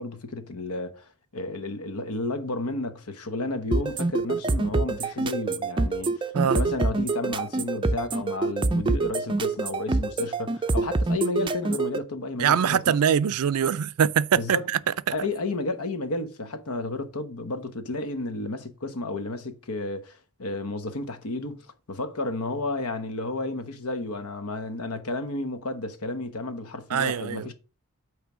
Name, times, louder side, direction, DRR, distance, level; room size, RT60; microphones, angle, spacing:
voice 1, 0.0-13.0 14.3-14.6 15.1-27.5, left 2 dB, 80° left, 1.0 m, -32 dB
sound 1, 3.7-12.0, right 3 dB, 20° right, 0.4 m, -25 dB
voice 2, 12.4-14.8 26.9-27.5, right 8 dB, 85° right, 0.4 m, -23 dB
8.7 x 3.3 x 6.0 m
head